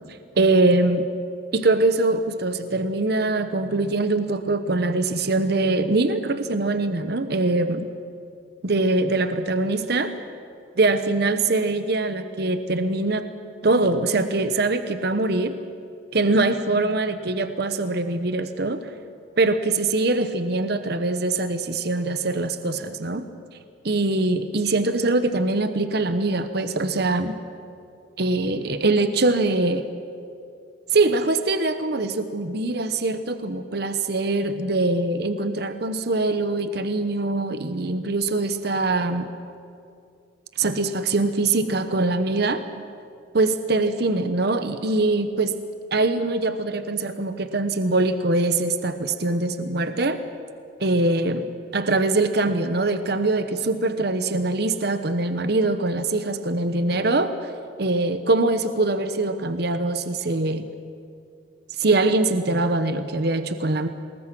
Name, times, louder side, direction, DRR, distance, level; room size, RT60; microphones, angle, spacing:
voice 1, 0.4-1.1 1.5-7.9 8.6-10.1 10.8-13.3 13.6-15.6 16.1-18.9 19.4-23.2 23.8-27.3 28.2-29.8 30.9-39.3 40.6-42.6 43.3-45.6 45.9-50.2 50.8-51.4 51.7-57.5 57.8-60.6 61.8-63.9, right 2 dB, 60° right, 10 dB, 1.0 m, -23 dB
27.0 x 20.5 x 6.2 m, 2.4 s
head